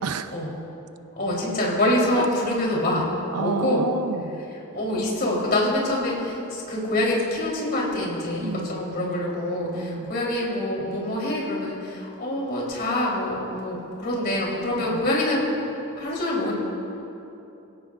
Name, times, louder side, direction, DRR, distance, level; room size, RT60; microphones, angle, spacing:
voice 1, 0.0-0.4 2.1-2.3 3.3-4.4 8.4-8.8 9.7-10.1 14.8-15.0, right 4 dB, 90° right, 10 dB, 0.7 m, -30 dB
voice 2, 1.2-3.1 3.4-3.9 4.7-15.4 16.0-16.5, left 1 dB, 45° left, -4 dB, 3.7 m, -25 dB
23.0 x 16.5 x 2.5 m, 2.9 s
head